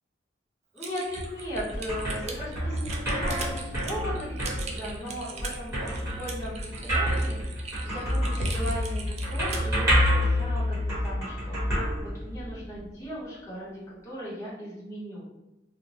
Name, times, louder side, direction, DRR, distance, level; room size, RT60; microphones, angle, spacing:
voice 1, 0.7-10.8 11.0-13.7 14.0-15.2, equal, 15° left, -8 dB, 0.7 m, -37 dB
Typing, 0.8-9.7, right 2 dB, 35° right, 0.4 m, -38 dB
sound 1, 1.2-12.7, equal, 15° right, 1.1 m, -28 dB
2.9 x 2.0 x 2.7 m, 0.96 s
head